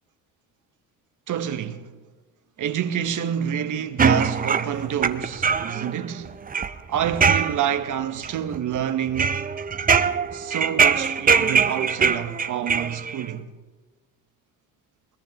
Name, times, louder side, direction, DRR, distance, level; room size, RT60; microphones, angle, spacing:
voice 1, 1.3-1.9 2.6-6.4 6.9-9.4 10.3-13.5, right 9 dB, 60° right, 1.1 m, -28 dB
sound 1, 4.0-5.9 6.2-7.9 8.2-8.8 9.1-13.2, right 6 dB, 25° right, 0.6 m, -22 dB
21.5 x 20.0 x 3.0 m
cardioid pair, 95°, 34 cm